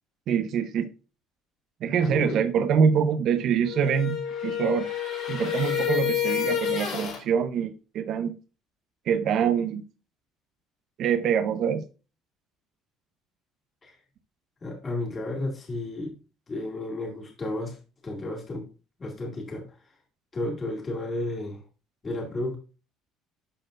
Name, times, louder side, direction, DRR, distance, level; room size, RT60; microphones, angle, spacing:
voice 1, 0.3-0.9 1.8-4.9 5.3-8.3 9.1-9.8 11.0-11.8, right 7 dB, 55° right, 0.9 m, -25 dB
voice 2, 2.0-2.4 13.8-13.9 14.6-16.1 16.5-17.8 18.0-18.7 19.0-19.6 20.3-21.6 22.0-22.6, left 2 dB, 25° left, 2.5 m, -32 dB
sound 1, 3.6-7.2, left 9 dB, 55° left, 3.1 m, -29 dB
12.5 x 4.3 x 2.6 m
cardioid pair, 120°, 0 cm